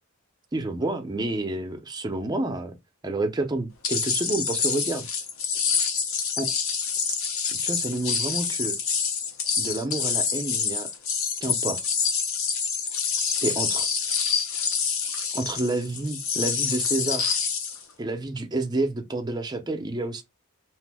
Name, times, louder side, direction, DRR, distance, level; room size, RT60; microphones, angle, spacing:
voice 1, 0.5-2.7 3.0-5.1 6.4-6.5 7.1-7.2 7.5-8.8 9.6-10.9 11.4-11.8 13.4-13.9 15.3-17.4 18.0-20.2, right 2 dB, 20° right, 0.4 m, -29 dB
sound 1, 3.8-17.8, left 6 dB, 70° left, 0.6 m, -27 dB
2.9 x 2.0 x 3.3 m
head